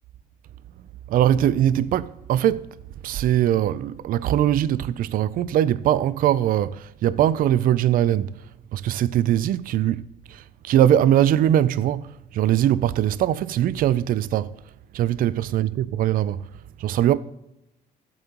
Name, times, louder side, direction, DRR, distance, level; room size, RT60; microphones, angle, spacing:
voice 1, 1.1-2.6 3.0-8.4 8.7-10.0 10.3-14.5 14.9-16.5 16.8-17.2, right 11 dB, 55° right, 0.4 m, -21 dB
14.0 x 8.1 x 3.0 m
cardioid pair, 110°, 17 cm